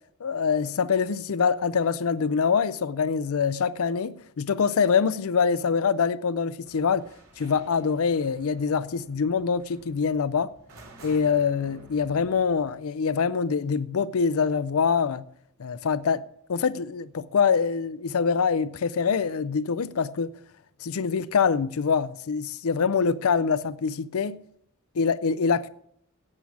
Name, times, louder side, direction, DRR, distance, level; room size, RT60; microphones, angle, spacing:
voice 1, 0.2-7.1 7.4-10.5 11.0-15.2 15.6-20.3 20.8-24.4 25.0-25.7, left 6 dB, 75° left, 0.5 m, -25 dB
sound 1, 6.6-12.7, right 2 dB, 80° right, 3.4 m, -51 dB
12.0 x 8.6 x 7.1 m
head